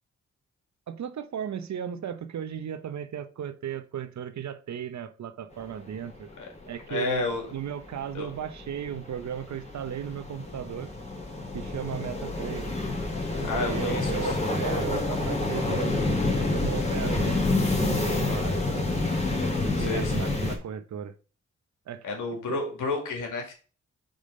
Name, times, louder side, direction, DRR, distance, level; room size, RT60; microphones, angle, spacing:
voice 1, 0.9-6.3 6.7-10.9 11.5-12.7 13.4-16.0 16.5-19.0 19.7-21.1 21.9-22.1 22.5-22.6, right 9 dB, 65° right, 0.8 m, -36 dB
sound 1, 6.1-6.2 6.5-20.6, left 2 dB, 20° left, 2.1 m, -28 dB
voice 2, 6.9-7.5 8.1-8.3 13.4-14.4 19.8-20.3 22.0-23.5, left 3 dB, 80° left, 2.0 m, -31 dB
5.2 x 3.8 x 5.2 m
cardioid pair, 55°, 31 cm